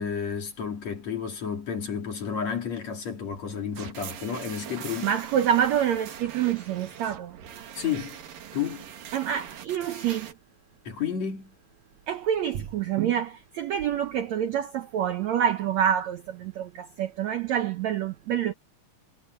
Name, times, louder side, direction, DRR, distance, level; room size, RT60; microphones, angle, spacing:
voice 1, 0.0-5.1 7.8-8.2 8.5-8.9 10.9-11.5, left 7 dB, 45° left, 3.9 m, -31 dB
sound 1, 3.8-10.3, right 9 dB, 65° right, 3.5 m, -42 dB
voice 2, 5.0-7.4 9.1-10.3 12.1-18.5, right 9 dB, 80° right, 1.5 m, -27 dB
omnidirectional pair, 4.5 m